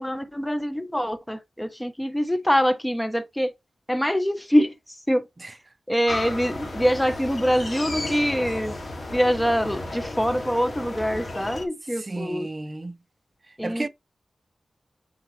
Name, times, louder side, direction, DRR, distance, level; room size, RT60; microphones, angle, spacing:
voice 1, 0.0-3.5 3.9-4.7 5.1-5.2 5.9-8.8 9.1-12.5 13.6-13.9, equal, 10° left, 0.9 m, -24 dB
sound 1, 6.1-11.7, left 2 dB, 55° left, 2.4 m, -33 dB
voice 2, 11.9-13.0 13.5-13.9, right 2 dB, 35° right, 0.6 m, -33 dB
7.3 x 4.0 x 3.2 m
wide cardioid pair, 85°, 0 cm